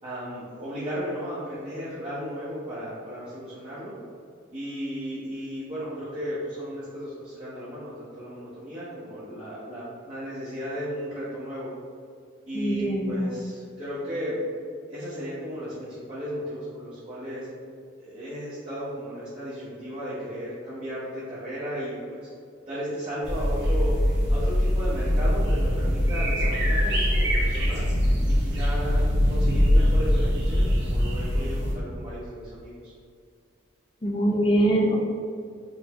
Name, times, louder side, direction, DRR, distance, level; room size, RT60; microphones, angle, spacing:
voice 1, 0.0-3.9 4.5-11.7 12.5-14.4 14.9-17.5 18.0-22.3 22.7-23.9 24.3-27.8 28.3-32.9, equal, 25° right, -10 dB, 0.8 m, -35 dB
voice 2, 12.5-13.3 34.0-35.0, right 1 dB, 25° left, -1 dB, 0.5 m, -23 dB
sound 1, 23.2-31.7, equal, 55° right, 0.8 m, -23 dB
3.8 x 3.4 x 2.9 m, 2.3 s
head